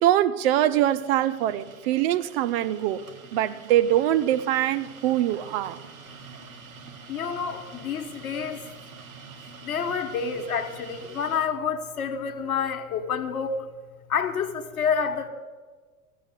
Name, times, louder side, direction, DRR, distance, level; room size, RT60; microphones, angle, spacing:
voice 1, 0.0-3.0 3.3-5.8, right 12 dB, 45° right, 0.6 m, -23 dB
sound 1, 0.7-11.4, right 6 dB, 70° right, 1.4 m, -46 dB
voice 2, 7.1-8.6 9.6-13.7 14.1-15.3, left 6 dB, 70° left, 1.2 m, -28 dB
14.5 x 7.0 x 9.4 m
figure-of-eight pair, 85°, 43 cm